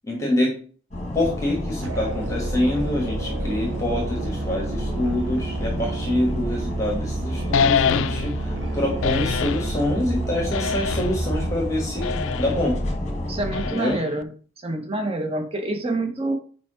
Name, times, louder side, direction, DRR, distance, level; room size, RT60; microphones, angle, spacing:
voice 1, 0.0-0.5 1.1-12.8 13.7-14.0, left 1 dB, 15° left, -2 dB, 1.5 m, -26 dB
sound 1, 0.9-13.7, left 1 dB, 35° left, 1.3 m, -30 dB
Musical instrument, 1.8-11.7, right 3 dB, 60° right, 0.6 m, -31 dB
sound 2, 7.5-8.4 9.0-9.7 10.5-11.3 12.0-12.6 13.5-14.2, left 7 dB, 70° left, 0.3 m, -25 dB
voice 2, 13.3-14.3 14.6-16.3, right 2 dB, 25° right, 4 dB, 0.9 m, -27 dB
4.8 x 4.8 x 4.9 m, 0.43 s
head